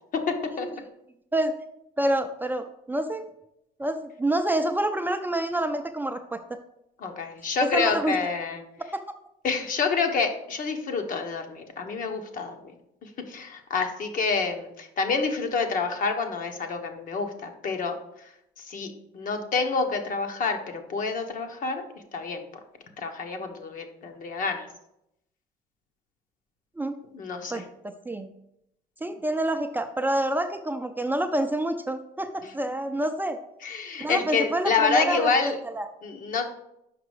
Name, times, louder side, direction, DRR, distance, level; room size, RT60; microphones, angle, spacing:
voice 1, 0.3-0.7 7.0-8.6 9.4-12.7 13.0-17.9 18.6-21.8 22.1-22.4 23.0-24.7 27.1-27.6 33.6-35.6 36.0-36.4, left 4 dB, 55° left, 4 dB, 1.2 m, -28 dB
voice 2, 2.0-3.3 3.8-6.6 7.6-8.2 26.8-27.0 27.5-27.7 28.1-28.3 29.0-33.4 34.0-35.3 35.6-35.9, right 1 dB, 10° right, 6 dB, 0.5 m, -27 dB
5.9 x 5.3 x 4.9 m, 0.81 s
cardioid pair, 110°, 17 cm